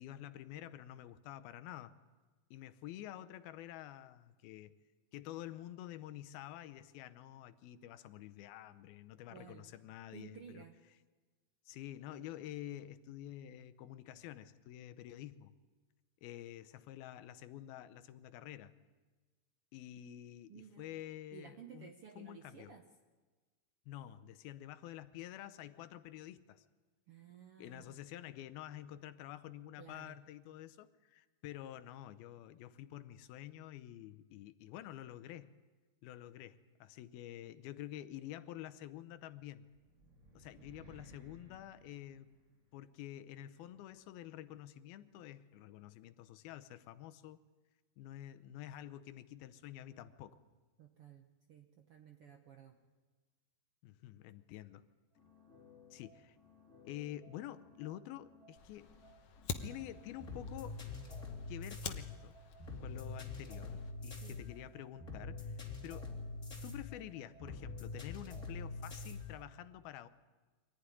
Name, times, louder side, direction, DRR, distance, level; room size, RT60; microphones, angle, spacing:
voice 1, 0.0-1.9 2.5-4.8 5.1-10.6 11.7-15.5 16.2-18.7 19.7-22.7 23.9-26.6 27.6-35.5 36.0-39.6 40.4-42.4 42.7-47.4 48.0-50.4 53.8-54.8 55.9-56.4 56.8-58.9 59.6-60.8 61.5-62.4 62.8-66.1 66.6-70.1, left 13 dB, 80° left, 11 dB, 2.7 m, -49 dB
voice 2, 9.3-9.8 10.1-10.7 20.5-20.9 21.3-22.8 27.1-28.0 29.8-30.2 40.5-40.7 50.8-52.8 64.2-64.6, right 8 dB, 80° right, 4 dB, 1.3 m, -55 dB
sound 1, 39.7-42.8, equal, 20° right, 3.8 m, -60 dB
sound 2, 55.2-69.4, left 3 dB, 25° left, 3.4 m, -46 dB
Fire, 58.5-63.9, left 6 dB, 65° left, 1.5 m, -48 dB
24.5 x 15.0 x 9.8 m, 1.3 s
omnidirectional pair, 4.3 m